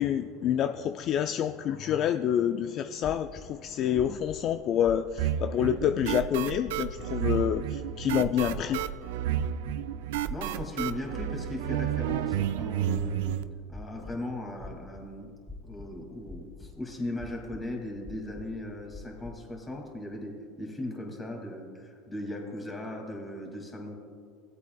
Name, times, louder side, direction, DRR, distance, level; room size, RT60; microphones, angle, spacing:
voice 1, 0.0-8.9, left 9 dB, 50° left, 9 dB, 0.3 m, -28 dB
sound 1, 3.0-3.4 3.9-4.4 4.8-5.4 5.7-6.2 6.6-7.1 7.5-7.9 8.4-8.9 9.3-9.9 10.2-10.7 11.2-11.7 12.0-12.5 12.9-14.1 14.6-15.0 15.5-16.0 16.3-16.7 17.2-17.6 18.0-18.6 18.9-19.3, left 3 dB, ahead, 1.0 m, -43 dB
sound 2, 5.2-13.4, right 11 dB, 80° right, 0.3 m, -31 dB
voice 2, 10.3-13.3 13.7-15.3 15.6-23.9, left 1 dB, 20° left, 1 dB, 2.3 m, -38 dB
17.0 x 8.2 x 2.3 m, 2.2 s
supercardioid pair, 100°, 0 cm